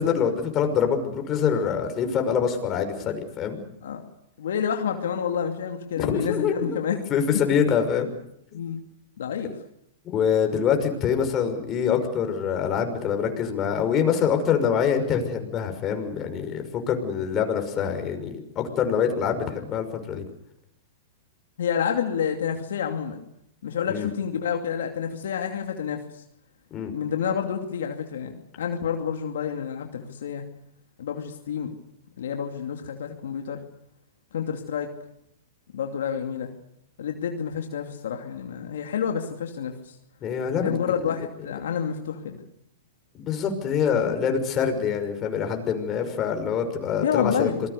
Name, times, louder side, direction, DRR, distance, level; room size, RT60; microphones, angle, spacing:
voice 1, 0.0-3.6 6.0-6.8 7.1-8.1 10.0-20.2 23.9-24.1 26.7-26.9 40.2-40.7 43.1-47.5, left 7 dB, 30° left, 5 dB, 5.9 m, -25 dB
voice 2, 4.4-7.0 8.5-8.8 9.2-9.5 21.6-23.2 23.6-26.2 26.8-30.4 31.0-31.7 32.2-33.6 34.3-34.9 35.7-36.5 37.0-39.9 40.6-42.4 47.0-47.6, left 7 dB, 75° left, 4 dB, 2.6 m, -29 dB
27.5 x 20.5 x 6.9 m, 0.77 s
hypercardioid pair, 115°, 0 cm